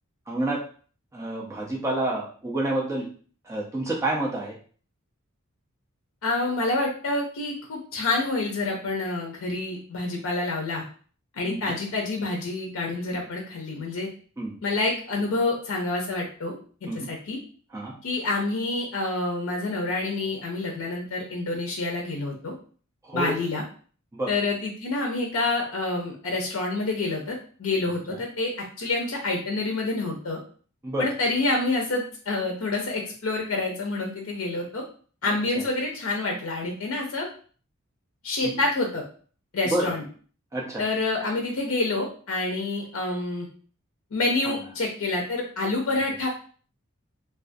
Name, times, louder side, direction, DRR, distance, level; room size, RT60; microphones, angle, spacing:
voice 1, 0.3-0.6 1.1-3.1 3.4-4.5 11.5-11.7 14.4-14.6 16.9-17.1 17.7-17.9 23.0-23.3 24.1-24.3 28.1-28.2 30.8-31.1 35.2-35.3 38.4-38.5 39.7-39.9 40.5-40.8 44.4-44.5, right 1 dB, 15° right, -2 dB, 0.4 m, -28 dB
voice 2, 6.2-10.8 11.4-14.1 14.6-17.4 18.0-22.5 23.1-23.6 24.3-28.5 28.8-30.4 31.0-34.8 35.2-37.3 38.2-39.0 39.5-40.0 40.8-43.5 44.1-46.3, left 2 dB, 70° left, 1 dB, 0.5 m, -27 dB
2.3 x 2.3 x 2.5 m, 0.43 s
head